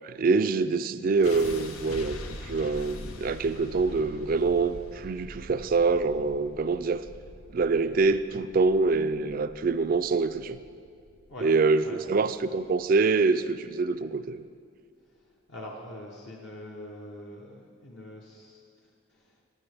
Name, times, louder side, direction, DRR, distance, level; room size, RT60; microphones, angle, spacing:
voice 1, 0.0-7.0 7.5-10.6 11.4-14.4, right 4 dB, 40° right, 13 dB, 0.3 m, -25 dB
sound 1, 1.2-13.2, left 1 dB, 90° left, 0.8 m, -44 dB
voice 2, 15.5-18.6 19.1-19.2, left 1 dB, 55° left, -2 dB, 0.9 m, -43 dB
14.5 x 10.5 x 3.4 m, 2.3 s
head